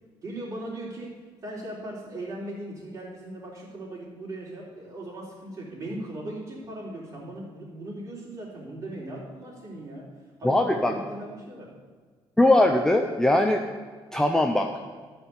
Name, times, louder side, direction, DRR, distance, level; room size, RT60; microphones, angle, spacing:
voice 1, 0.2-1.1 1.4-10.0 10.4-11.7, right 1 dB, 35° right, -5 dB, 3.6 m, -38 dB
voice 2, 10.4-10.9 12.4-13.6 14.1-14.7, left 1 dB, 5° left, 3 dB, 0.5 m, -20 dB
13.0 x 4.5 x 8.3 m, 1.5 s
cardioid pair, 160°, 9 cm